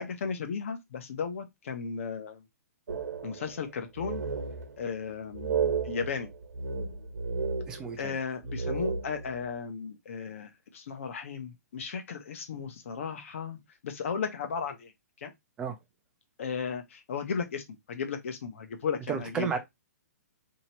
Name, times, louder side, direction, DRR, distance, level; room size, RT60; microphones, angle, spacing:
voice 1, 0.0-2.4 3.2-4.2 4.8-6.3 8.0-13.6 13.8-14.9 15.2-15.3 16.4-19.6, left 6 dB, 50° left, 0.9 m, -35 dB
sound 1, 2.9-3.7 4.0-4.9 5.3-8.1 8.4-9.4, right 5 dB, 85° right, 1.0 m, -33 dB
voice 2, 7.7-8.2 15.6-15.8 19.1-19.6, right 6 dB, 10° right, 0.4 m, -32 dB
2.9 x 2.9 x 4.2 m
hypercardioid pair, 170°, 9 cm